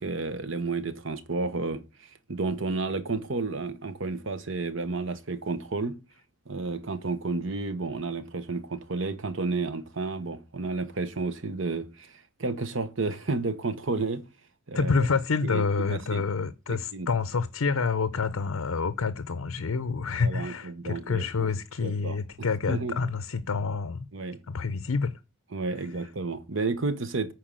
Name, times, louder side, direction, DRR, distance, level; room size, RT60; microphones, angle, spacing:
voice 1, 0.0-6.0 6.5-14.2 14.7-15.1 15.4-15.6 15.9-16.2 16.7-17.1 20.2-21.5 21.8-22.2 22.7-23.0 24.1-24.4 25.5-27.3, right 3 dB, 65° right, 1.0 m, -31 dB
voice 2, 14.7-24.1 24.5-25.2, left 4 dB, 85° left, 0.6 m, -28 dB
8.9 x 4.7 x 7.5 m
head